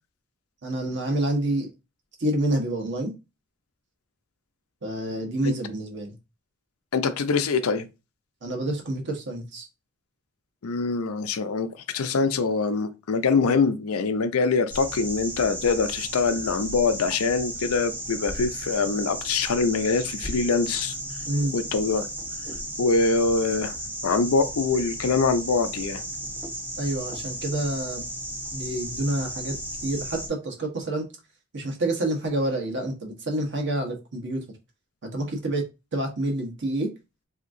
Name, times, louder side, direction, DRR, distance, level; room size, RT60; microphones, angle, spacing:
voice 1, 0.6-1.7 2.2-3.1 4.8-6.1 8.4-9.7 21.3-21.6 26.8-28.0 28.5-29.6 29.8-31.0 31.5-34.4 35.0-35.6 35.9-36.9, right 1 dB, 55° right, 1.1 m, -28 dB
voice 2, 6.9-7.9 10.6-20.9 21.5-22.1 22.8-23.7 24.0-26.0, left 4 dB, 85° left, 0.5 m, -24 dB
sound 1, 14.7-30.3, right 1 dB, 10° right, 0.9 m, -35 dB
3.5 x 2.8 x 2.5 m
head